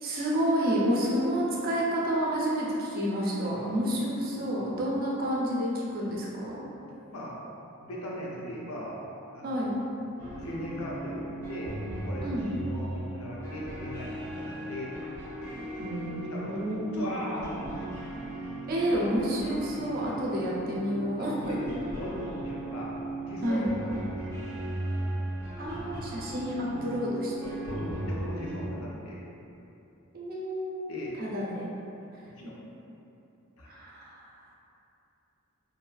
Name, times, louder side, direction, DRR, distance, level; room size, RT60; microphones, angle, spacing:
voice 1, 0.0-6.6 9.4-9.7 12.2-12.5 15.8-17.1 18.7-21.7 23.4-23.7 25.6-27.5 30.1-31.7 32.1-32.2 33.7-34.2, equal, 45° right, -5 dB, 0.4 m, -30 dB
voice 2, 7.8-9.0 9.3-9.8 10.4-15.1 15.5-15.9 16.3-16.6 16.9-17.9 20.0-20.2 21.2-23.0 23.3-24.5 27.6-29.2 30.9-31.2 32.2-32.6 33.6-33.8, left 1 dB, 80° left, -4 dB, 0.5 m, -39 dB
sound 1, 10.2-28.7, right 1 dB, 10° left, 0.6 m, -37 dB
2.6 x 2.3 x 2.2 m, 2.8 s
head